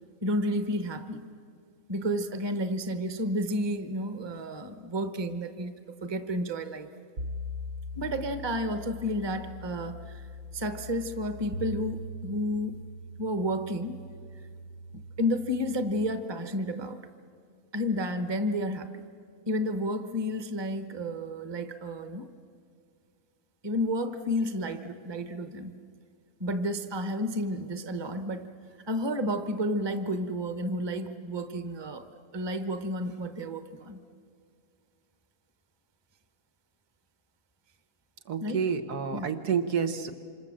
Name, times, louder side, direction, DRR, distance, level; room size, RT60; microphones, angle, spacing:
voice 1, 0.2-1.3 1.9-5.7 6.0-6.9 7.9-10.2 10.5-12.8 13.2-14.0 14.9-17.0 17.7-19.0 19.5-22.3 23.6-25.8 26.4-28.5 28.9-32.1 32.3-34.0 38.4-38.6 39.1-39.3, equal, 20° right, 9 dB, 0.9 m, -31 dB
sound 1, 7.2-15.9, left 1 dB, 60° right, 1.2 m, -41 dB
voice 2, 38.3-40.1, right 6 dB, 80° right, 6 dB, 1.8 m, -29 dB
27.5 x 26.5 x 7.5 m, 2.2 s
omnidirectional pair, 1.6 m